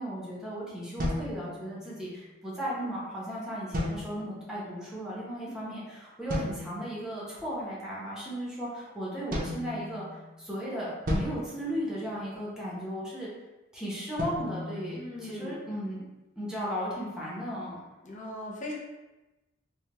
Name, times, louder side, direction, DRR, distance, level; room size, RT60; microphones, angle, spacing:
voice 1, 0.0-10.0 10.4-13.3 13.7-16.0 16.4-17.8, equal, 5° right, -7 dB, 0.8 m, -36 dB
sound 1, 1.0-2.1 3.7-4.5 6.3-7.0 9.3-10.4 11.1-12.5 14.2-15.7, left 1 dB, 45° right, 0.6 m, -35 dB
voice 2, 14.9-15.6 18.0-18.8, left 1 dB, 40° left, -3 dB, 0.6 m, -39 dB
3.2 x 2.2 x 2.9 m, 1.1 s
head